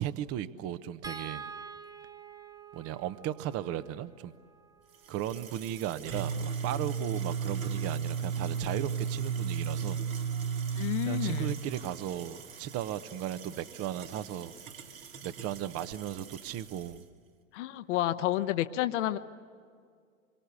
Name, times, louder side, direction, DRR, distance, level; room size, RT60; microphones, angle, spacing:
voice 1, 0.0-1.5 2.7-4.3 5.1-10.0 11.0-14.5 15.2-17.1, right 11 dB, 35° right, 14 dB, 1.0 m, -36 dB
sound 1, 1.0-7.4 8.9-9.1 9.4-9.6, right 5 dB, 10° right, 0.8 m, -48 dB
sound 2, 4.9-17.0, right 7 dB, 75° right, 2.7 m, -36 dB
voice 2, 10.8-11.6 17.5-19.2, left 14 dB, 60° left, 10 dB, 1.0 m, -30 dB
26.5 x 23.5 x 8.4 m, 2.1 s
hypercardioid pair, 95°, 41 cm